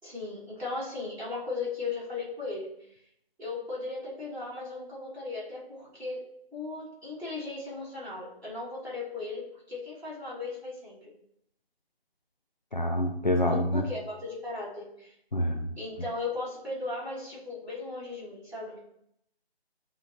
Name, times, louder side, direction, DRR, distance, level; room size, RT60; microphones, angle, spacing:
voice 1, 0.0-3.0 3.4-6.2 6.5-11.1 13.5-15.1 15.7-18.8, left 3 dB, ahead, -29 dB, 1.3 m, -37 dB
voice 2, 12.7-13.9 15.3-15.7, left 1 dB, 45° left, 3 dB, 0.6 m, -27 dB
9.2 x 3.8 x 3.0 m, 0.74 s
figure-of-eight pair, 175°, 31 cm